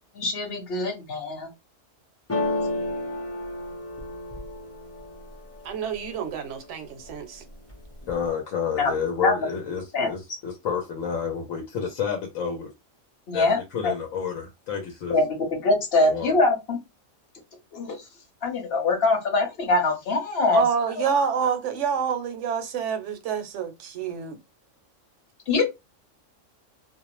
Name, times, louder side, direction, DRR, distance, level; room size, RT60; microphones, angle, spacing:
voice 1, 0.2-1.5 8.8-8.9 9.2-9.3 9.9-10.1 13.3-13.6 15.1-15.2 15.5-16.8 17.7-17.9 18.4-20.6 25.5-25.6, left 2 dB, 55° left, 1.0 m, -23 dB
sound 1, 2.3-6.2 6.6-7.2 7.5-8.3, left 2 dB, 15° left, 0.5 m, -32 dB
voice 2, 5.6-7.4 20.5-24.4, right 7 dB, 70° right, 0.9 m, -27 dB
voice 3, 8.1-12.7 13.3-13.5 13.7-15.1 16.0-16.3, left 7 dB, 85° left, 1.1 m, -29 dB
2.5 x 2.0 x 2.9 m
omnidirectional pair, 1.3 m